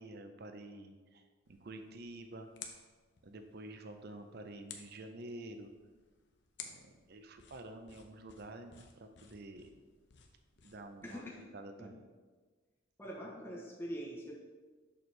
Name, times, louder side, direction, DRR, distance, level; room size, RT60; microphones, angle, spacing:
voice 1, 0.0-2.8 3.2-5.7 6.6-9.7 10.6-12.1, right 2 dB, 55° right, 7 dB, 0.6 m, -49 dB
sound 1, 1.4-11.5, left 6 dB, 65° left, 0.7 m, -56 dB
voice 2, 11.0-11.4 11.8-11.9 13.0-14.3, equal, 10° left, -3 dB, 0.8 m, -43 dB
6.7 x 6.2 x 3.2 m, 1.4 s
head